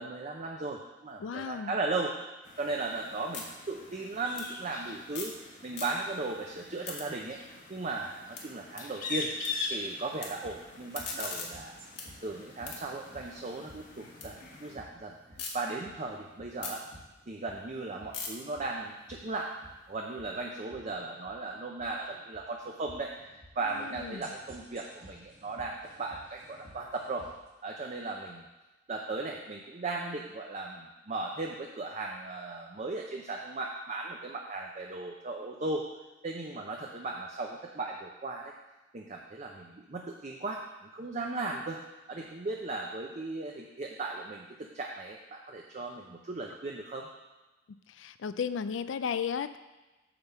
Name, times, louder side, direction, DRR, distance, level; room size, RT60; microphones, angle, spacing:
voice 1, 0.0-2.1 2.6-5.3 5.6-7.4 7.7-9.3 9.7-11.8 12.2-14.3 14.6-15.2 15.5-16.8 17.3-19.5 19.9-27.3 27.6-28.5 28.9-35.8 36.2-38.5 38.9-41.8 42.1-47.1, right 3 dB, 40° right, 0 dB, 0.6 m, -37 dB
voice 2, 1.2-1.7 23.8-24.3 47.9-49.6, left 6 dB, 80° left, 12 dB, 0.4 m, -34 dB
sound 1, 2.4-14.8, left 3 dB, 45° left, 1.1 m, -43 dB
sound 2, 2.5-5.4 5.7-6.3 6.6-9.5 9.8-10.3 10.7-14.3 14.7-15.5 16.0-20.1, left 5 dB, 60° left, 1.5 m, -44 dB
sound 3, 10.2-27.5, equal, 60° right, 2.1 m, -55 dB
8.8 x 3.5 x 6.8 m, 1.1 s
head